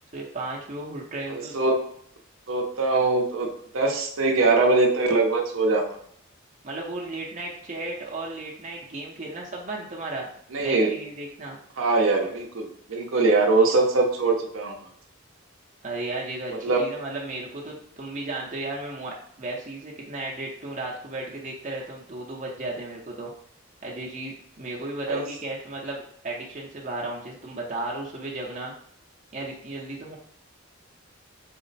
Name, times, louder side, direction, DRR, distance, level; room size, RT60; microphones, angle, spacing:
voice 1, 0.1-1.5 6.6-10.3 10.6-11.6 15.8-23.3 23.8-28.7 29.3-30.2, right 2 dB, 35° right, -3 dB, 0.6 m, -34 dB
voice 2, 1.3-1.8 2.5-5.8 10.5-10.9 11.8-14.8 16.6-16.8 25.1-25.3, right 3 dB, 80° right, 1 dB, 0.6 m, -22 dB
4.2 x 2.0 x 3.9 m, 0.65 s
head